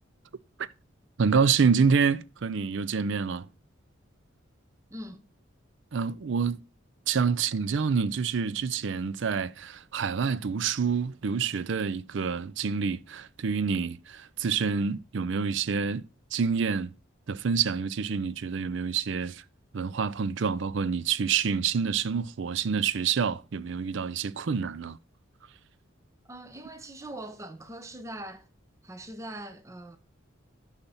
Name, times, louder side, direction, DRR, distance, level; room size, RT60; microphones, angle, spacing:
voice 1, 1.2-3.4 5.9-6.6 7.1-16.0 16.3-16.9 17.3-19.4 19.7-25.0, right 6 dB, 60° right, 0.4 m, -27 dB
voice 2, 4.9-5.3 26.3-28.5 28.8-30.0, right 1 dB, 15° right, 0.7 m, -42 dB
6.9 x 5.7 x 5.5 m
head